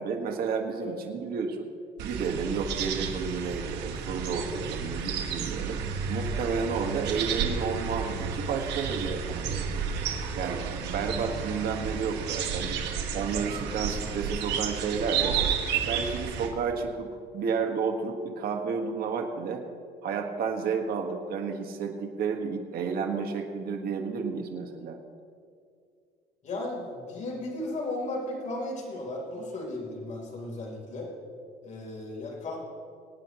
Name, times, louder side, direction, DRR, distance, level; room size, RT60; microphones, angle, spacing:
voice 1, 0.0-1.7 2.0-5.8 6.1-9.9 10.3-12.7 13.1-15.4 15.9-17.1 17.3-19.6 20.0-25.0, right 5 dB, 65° right, 3 dB, 1.7 m, -31 dB
sound 1, 2.0-16.5, right 6 dB, 85° right, 1.6 m, -32 dB
voice 2, 26.4-31.1 31.6-32.6, left 2 dB, 45° left, -2 dB, 3.7 m, -35 dB
25.0 x 9.2 x 3.1 m, 2.3 s
cardioid pair, 110°, 17 cm